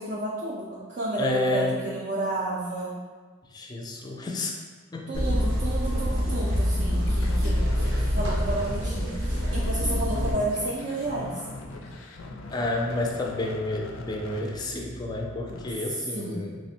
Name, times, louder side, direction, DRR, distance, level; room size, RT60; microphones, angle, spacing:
voice 1, 0.0-3.0 5.1-11.4 16.1-16.5, right 2 dB, 50° right, -6 dB, 0.4 m, -31 dB
voice 2, 1.2-1.7 3.5-4.6 4.9-5.5 12.5-16.6, left 2 dB, 20° left, 0 dB, 0.3 m, -30 dB
sound 1, 5.1-10.3, equal, 85° right, 0.8 m, -25 dB
sound 2, 7.1-15.8, left 2 dB, 85° left, 0.4 m, -41 dB
3.3 x 2.1 x 4.2 m, 1.4 s
head